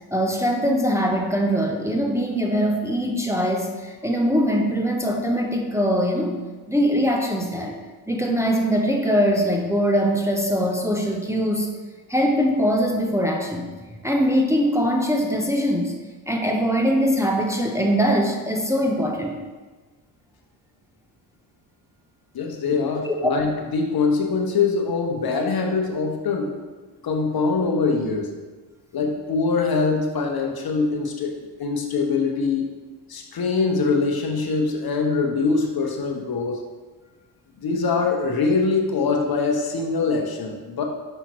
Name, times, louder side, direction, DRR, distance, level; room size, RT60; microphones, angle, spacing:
voice 1, 0.1-6.4 6.7-7.8 8.1-11.7 12.1-13.7 14.0-15.9 16.3-19.4 23.0-23.1, equal, 5° right, 0 dB, 0.9 m, -22 dB
voice 2, 22.3-26.5 27.0-28.3 28.9-32.7 33.1-36.7 37.6-40.8, left 4 dB, 50° left, 2 dB, 1.1 m, -23 dB
5.7 x 5.6 x 3.1 m, 1.3 s
supercardioid pair, 55°, 49 cm